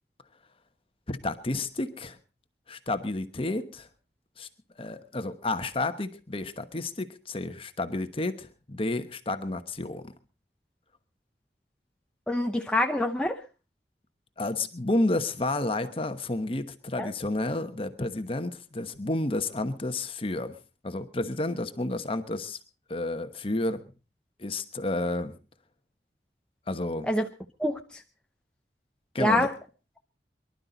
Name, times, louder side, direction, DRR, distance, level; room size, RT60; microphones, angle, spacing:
voice 1, 1.1-2.2 2.7-3.9 4.4-4.5 4.8-10.1 14.4-20.6 20.8-22.6 22.9-23.8 24.4-25.4 26.7-27.1 29.1-29.5, left 2 dB, 30° left, 10 dB, 1.1 m, -31 dB
voice 2, 12.3-13.4 17.0-17.1 27.1-27.3 27.6-27.8 29.2-29.5, left 1 dB, 5° left, 3 dB, 0.7 m, -25 dB
24.0 x 12.0 x 4.0 m, 0.34 s
head